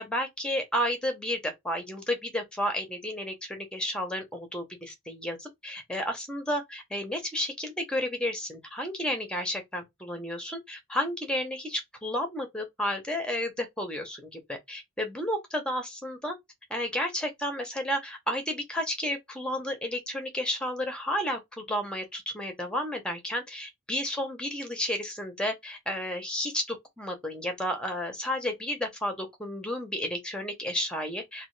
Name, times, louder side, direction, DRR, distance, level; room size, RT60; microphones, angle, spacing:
voice 1, 0.0-16.3 16.7-31.5, equal, 5° left, 0.8 m, -32 dB
3.3 x 2.2 x 3.2 m
head